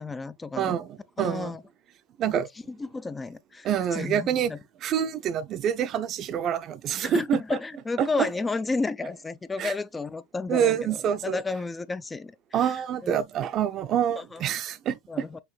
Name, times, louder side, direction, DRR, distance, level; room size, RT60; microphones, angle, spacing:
voice 1, 0.0-0.8 1.2-1.6 2.7-4.6 7.0-13.1 14.2-14.5 15.1-15.4, left 3 dB, 15° left, 0.4 m, -32 dB
voice 2, 0.6-1.5 2.2-2.5 3.6-4.5 4.8-7.4 8.0-8.1 9.6-9.7 10.5-11.4 12.5-15.4, right 9 dB, 40° right, 0.6 m, -27 dB
5.9 x 2.6 x 3.1 m
hypercardioid pair, 90°, 0 cm